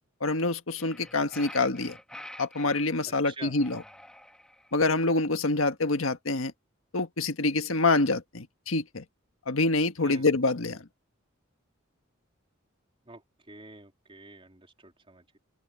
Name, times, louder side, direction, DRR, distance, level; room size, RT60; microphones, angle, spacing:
voice 1, 0.2-2.0 2.4-3.8 4.7-6.5 6.9-9.0 9.5-10.8, left 3 dB, 75° left, 1.6 m, -26 dB
sound 1, 0.7-2.9 3.5-4.8, left 1 dB, 5° left, 2.1 m, -47 dB
voice 2, 13.1-15.4, right 2 dB, 25° right, 3.8 m, -48 dB
open air
head